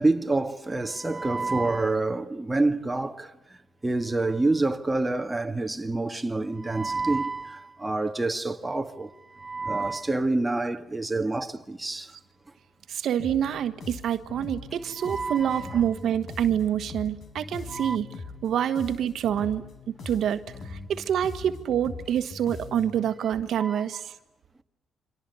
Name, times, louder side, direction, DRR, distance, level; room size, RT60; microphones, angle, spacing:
voice 1, 0.0-3.3 3.8-12.1 15.0-15.8 17.7-18.0 23.6-23.8, right 2 dB, 15° right, 1.7 m, -27 dB
voice 2, 12.9-18.1 18.4-24.1, right 9 dB, 70° right, 1.4 m, -27 dB
sound 1, 13.2-23.1, left 3 dB, 55° left, 4.6 m, -42 dB
29.5 x 25.0 x 7.0 m
cardioid pair, 90°, 0 cm